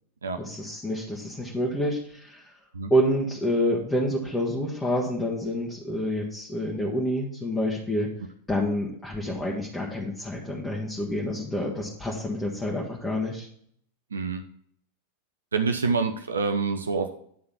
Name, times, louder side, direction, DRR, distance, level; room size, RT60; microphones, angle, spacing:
voice 1, 0.4-2.4 2.9-8.1 8.5-13.5, equal, 10° left, -3 dB, 1.4 m, -28 dB
voice 2, 14.1-14.4 15.5-17.1, right 4 dB, 70° right, 6 dB, 0.6 m, -26 dB
11.0 x 3.7 x 5.7 m, 0.66 s
figure-of-eight pair, 90°, 0 cm